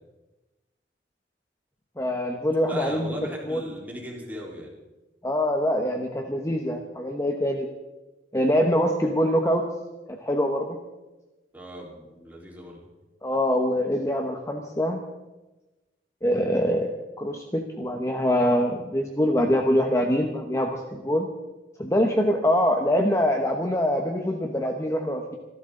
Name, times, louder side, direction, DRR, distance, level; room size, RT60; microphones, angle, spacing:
voice 1, 2.0-3.1 3.5-3.6 5.2-7.7 8.3-9.6 10.1-10.8 13.2-15.0 16.2-21.3 21.8-25.4, equal, 15° left, 3 dB, 1.1 m, -24 dB
voice 2, 2.7-4.7 11.5-12.8, equal, 10° right, -3 dB, 3.9 m, -37 dB
26.5 x 12.0 x 3.9 m, 1.1 s
head